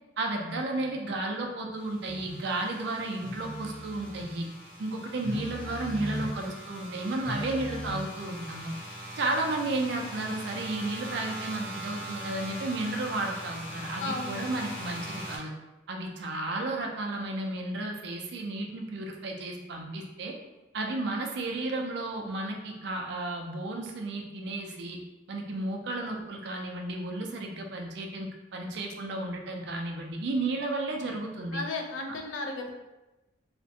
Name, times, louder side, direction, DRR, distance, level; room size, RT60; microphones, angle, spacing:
voice 1, 0.2-4.5 4.8-8.7 9.2-15.5 15.9-20.3 20.7-25.0 25.3-31.6, right 2 dB, 60° right, 2 dB, 0.4 m, -33 dB
sound 1, 1.8-15.4, right 1 dB, 5° left, 0.7 m, -42 dB
Telephone, 2.0-2.3 3.2-4.3 5.2-6.5 7.2-7.9, left 1 dB, 45° left, 0.9 m, -38 dB
voice 2, 14.0-14.4 31.5-32.7, left 2 dB, 80° left, 3 dB, 0.4 m, -34 dB
2.4 x 2.1 x 2.6 m, 1.0 s
head